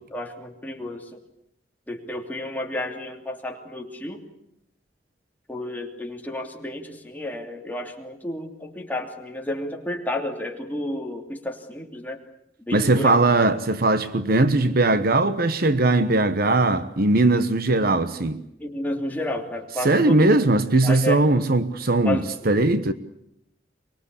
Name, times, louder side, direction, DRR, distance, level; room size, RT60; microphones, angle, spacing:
voice 1, 0.1-1.0 1.9-4.2 5.5-12.2 12.7-13.4 18.6-20.3 20.8-21.2 22.0-22.2, left 1 dB, 10° left, 3.0 m, -31 dB
voice 2, 12.7-18.4 19.8-22.9, right 2 dB, 55° right, 1.1 m, -20 dB
24.0 x 22.0 x 8.4 m
head